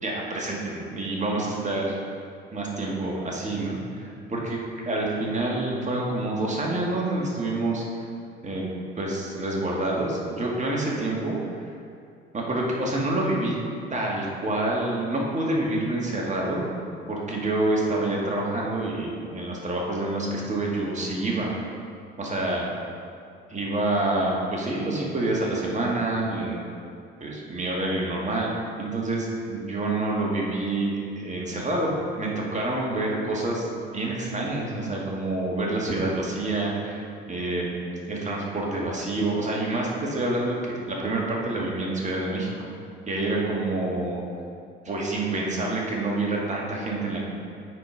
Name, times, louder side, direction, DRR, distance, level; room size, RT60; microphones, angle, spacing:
voice 1, 0.0-2.0 2.5-4.6 4.8-7.8 8.4-8.7 9.0-11.4 12.3-13.6 13.9-16.6 17.1-21.5 22.2-22.7 23.5-26.6 27.2-28.5 28.8-31.9 32.2-37.8 38.1-42.5 43.1-44.2 44.9-47.2, right 2 dB, 25° right, -3 dB, 2.0 m, -27 dB
9.0 x 4.4 x 5.2 m, 2.4 s
figure-of-eight pair, 55°, 30 cm